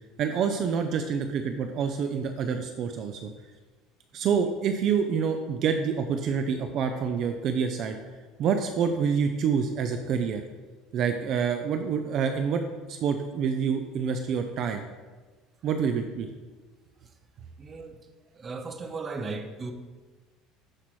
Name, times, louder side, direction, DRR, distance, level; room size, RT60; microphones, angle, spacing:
voice 1, 0.2-3.3 4.1-7.9 8.4-10.4 10.9-12.6 12.9-14.8 15.6-16.3, right 6 dB, 45° right, 6 dB, 0.5 m, -27 dB
voice 2, 17.6-17.9 18.4-19.7, right 3 dB, 25° right, 7 dB, 0.8 m, -36 dB
13.0 x 5.7 x 3.1 m, 1.3 s
cardioid pair, 140°, 0 cm